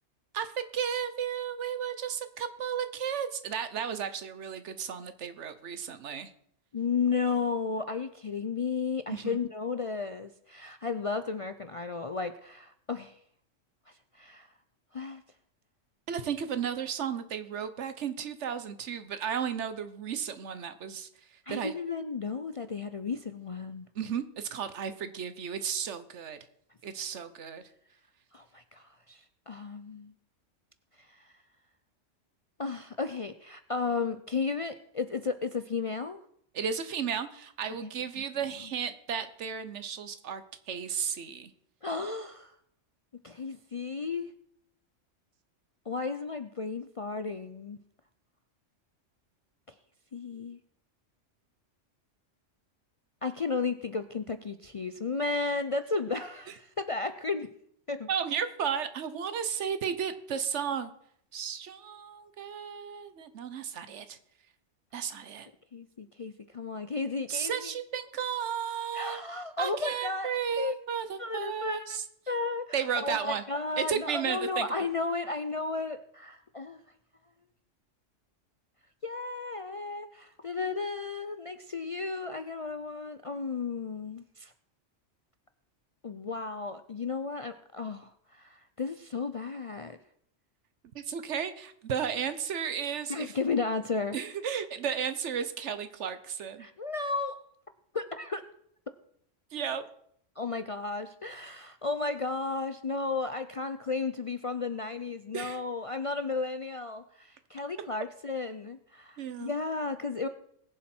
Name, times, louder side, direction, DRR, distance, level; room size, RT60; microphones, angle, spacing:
voice 1, 0.3-6.3 9.1-9.4 16.1-21.1 21.5-21.7 23.9-26.4 26.8-27.6 36.5-41.5 58.1-60.9 61.3-64.2 64.9-65.5 67.3-69.2 69.6-72.0 72.7-73.4 73.8-74.7 90.9-93.3 94.1-96.7 99.5-99.8 105.3-105.6 109.2-109.5, right 7 dB, 70° right, 11 dB, 1.2 m, -34 dB
voice 2, 6.7-13.2 14.1-14.5 14.9-15.2 21.5-23.9 28.3-30.1 31.1-31.3 32.6-36.2 37.8-37.9 38.2-38.3 41.8-42.5 43.2-44.3 45.9-47.8 50.1-50.6 53.2-57.5 57.9-58.1 65.7-67.7 68.9-70.7 71.2-72.0 72.3-76.8 79.0-84.5 86.0-90.0 93.1-94.2 96.6-97.5 97.9-98.4 100.4-110.3, left 4 dB, 50° left, 9 dB, 0.4 m, -34 dB
20.5 x 7.3 x 4.4 m, 0.69 s
omnidirectional pair, 1.3 m